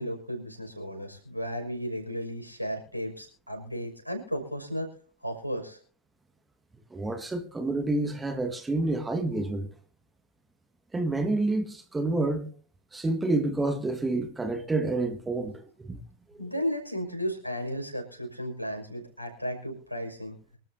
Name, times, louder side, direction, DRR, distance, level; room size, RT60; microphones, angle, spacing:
voice 1, 0.0-4.9 5.2-5.8 16.4-20.4, equal, 90° right, 6.0 m, -34 dB
voice 2, 6.9-9.7 10.9-12.5 12.9-16.0, right 2 dB, 10° right, 1.8 m, -28 dB
25.5 x 13.0 x 2.8 m
figure-of-eight pair, 90°, 0 cm